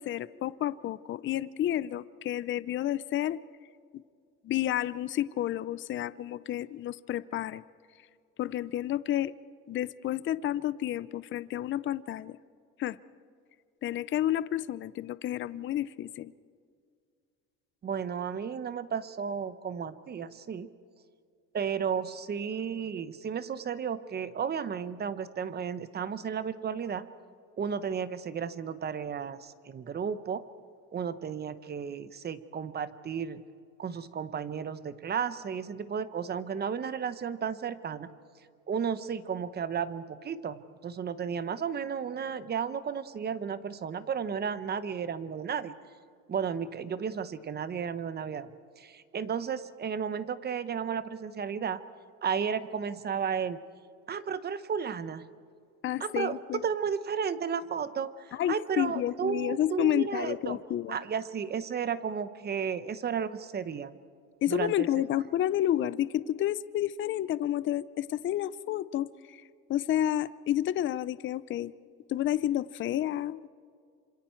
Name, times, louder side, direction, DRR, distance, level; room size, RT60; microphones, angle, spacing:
voice 1, 0.0-3.4 4.4-7.6 8.4-9.3 9.7-12.4 12.8-13.0 13.8-16.3 55.8-56.6 58.3-61.0 64.4-69.4 69.7-71.7 72.1-73.4, left 12 dB, 40° left, 17 dB, 0.5 m, -30 dB
voice 2, 17.8-20.7 21.5-27.1 27.6-30.4 30.9-33.4 33.8-38.1 38.7-45.8 46.3-51.8 52.2-53.6 54.1-55.3 56.0-60.6 60.9-63.9 64.5-64.9, right 7 dB, 30° right, 13 dB, 0.9 m, -33 dB
27.5 x 26.5 x 4.5 m, 2.2 s
cardioid pair, 130°, 32 cm